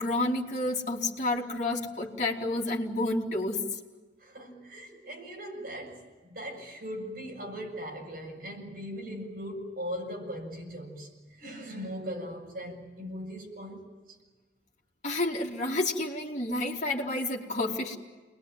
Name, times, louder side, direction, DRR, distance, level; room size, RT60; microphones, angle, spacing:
voice 1, 0.0-3.6 15.0-18.0, left 2 dB, 40° left, -1 dB, 3.3 m, -30 dB
voice 2, 4.2-13.8, equal, 50° right, 0 dB, 7.6 m, -39 dB
29.0 x 21.5 x 9.4 m, 1.3 s
head